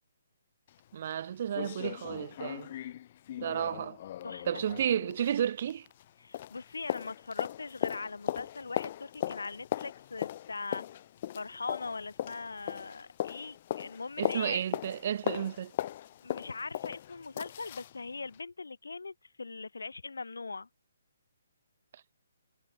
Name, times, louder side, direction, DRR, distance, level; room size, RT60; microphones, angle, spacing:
sound 1, 0.7-0.8 1.1-1.2 1.5-6.1 6.3-18.0 18.3-18.4, left 12 dB, 40° left, 0.3 m, -38 dB
voice 1, 0.9-2.7 3.4-4.0 4.5-5.9 14.2-15.7, right 9 dB, 50° right, 0.5 m, -32 dB
voice 2, 4.2-4.7 6.2-10.8 11.3-14.6 16.2-20.7, left 4 dB, 80° left, 0.7 m, -41 dB
figure-of-eight pair, 140°, 0 cm